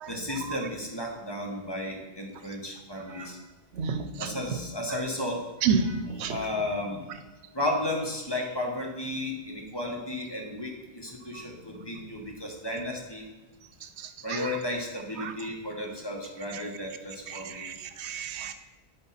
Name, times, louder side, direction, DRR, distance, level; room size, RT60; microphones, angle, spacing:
voice 1, 0.1-3.4 4.2-7.1 7.5-13.2 14.2-17.7, left 1 dB, 25° left, 0 dB, 1.1 m, -34 dB
voice 2, 3.8-4.3 5.6-6.4 14.3-14.4 15.2-15.3 17.6-18.5, right 5 dB, 85° right, 9 dB, 0.9 m, -29 dB
10.0 x 3.9 x 4.2 m, 1.2 s
omnidirectional pair, 1.1 m